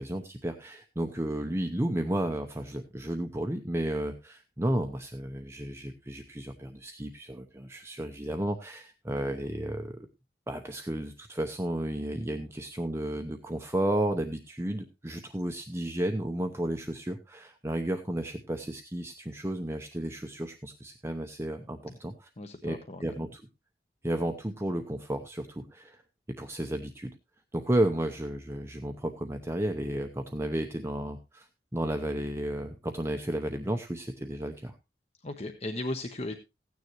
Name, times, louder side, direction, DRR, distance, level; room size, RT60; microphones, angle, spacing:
voice 1, 0.0-10.1 10.5-22.3 22.6-23.4 24.0-26.0 26.3-27.1 27.5-34.7, right 1 dB, 15° right, 5 dB, 0.7 m, -33 dB
voice 2, 22.4-23.1 35.2-36.3, left 1 dB, 35° left, 6 dB, 0.9 m, -36 dB
16.0 x 9.5 x 3.0 m, 0.25 s
head